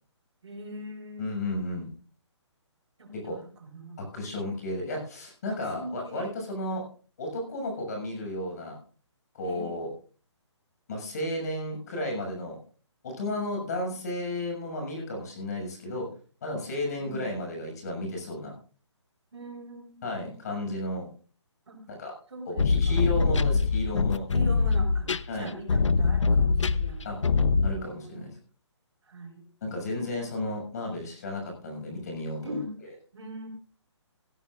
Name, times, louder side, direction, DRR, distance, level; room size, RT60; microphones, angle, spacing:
voice 1, 0.4-1.3 3.0-4.1 5.5-6.3 6.7-6.8 9.4-9.8 17.0-17.4 19.3-20.4 21.7-21.8 22.3-23.0 24.3-27.1 27.6-28.3 29.0-29.4 32.4-32.8 33.1-33.5, right 1 dB, 70° right, 2 dB, 5.9 m, -41 dB
voice 2, 1.2-1.9 3.1-3.4 4.0-6.8 7.2-8.8 9.3-9.9 10.9-12.6 13.0-16.1 16.4-18.5 20.0-21.1 21.9-22.1 22.4-24.3 25.3-25.5 27.0-27.2 27.6-28.3 29.6-32.6, left 1 dB, 35° left, 1 dB, 6.8 m, -33 dB
sound 1, 22.6-27.7, left 4 dB, 80° left, 0.9 m, -23 dB
17.5 x 16.0 x 2.5 m, 0.39 s
hypercardioid pair, 175°, 15 cm